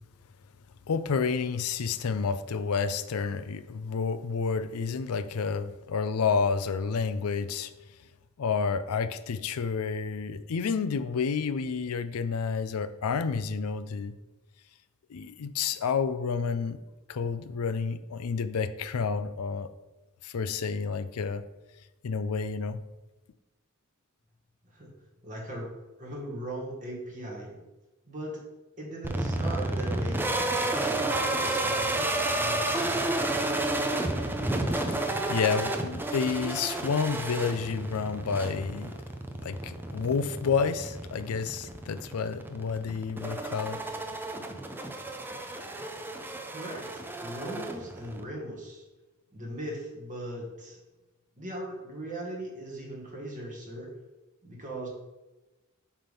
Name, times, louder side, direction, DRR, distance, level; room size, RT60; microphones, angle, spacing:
voice 1, 0.9-7.7 8.4-14.2 15.1-16.8 17.1-19.7 20.2-21.4 22.0-22.8 34.8-39.0 39.4-43.8, left 5 dB, 85° left, 13 dB, 0.5 m, -30 dB
voice 2, 25.2-25.7 26.0-27.6 28.1-28.4 28.8-30.3 30.8-33.2 46.5-48.8 49.3-50.8 51.4-53.9 54.4-54.9, right 1 dB, 35° right, -2 dB, 1.8 m, -39 dB
sound 1, 29.0-48.2, right 2 dB, 10° right, 0.5 m, -31 dB
7.3 x 3.5 x 5.4 m, 1.1 s
head